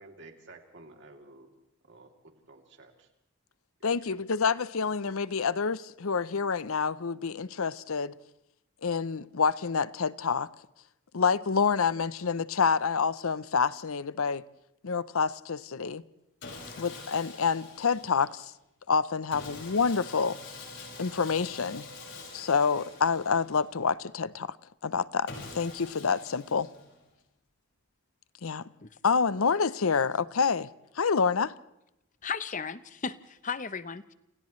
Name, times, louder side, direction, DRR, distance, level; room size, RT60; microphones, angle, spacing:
voice 1, 0.0-1.5 1.8-3.1 4.0-4.2, right 2 dB, 55° right, 3.0 m, -52 dB
voice 2, 3.8-8.1 8.8-10.5 11.1-14.4 14.8-16.0 16.8-18.5 18.9-20.4 21.0-21.9 22.3-24.6 24.8-26.7 28.4-28.6 29.0-30.7 31.0-31.5, left 5 dB, 75° left, 0.7 m, -27 dB
Sawing, 16.4-18.5 19.3-23.8 25.3-27.1, left 3 dB, 55° left, 5.7 m, -45 dB
voice 3, 32.2-34.1, left 6 dB, 35° left, 0.7 m, -35 dB
30.0 x 28.0 x 3.2 m
head